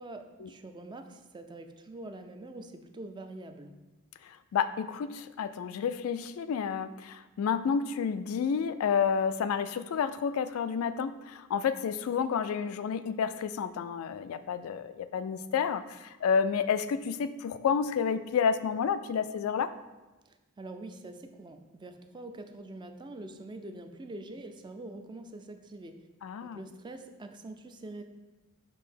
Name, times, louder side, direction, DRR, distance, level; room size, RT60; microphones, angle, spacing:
voice 1, 0.0-3.7 20.3-26.0 26.4-28.0, right 2 dB, 20° right, 6 dB, 0.4 m, -44 dB
voice 2, 4.2-19.7 26.2-26.6, left 6 dB, 80° left, 12 dB, 0.3 m, -30 dB
6.2 x 2.7 x 5.5 m, 1.1 s
head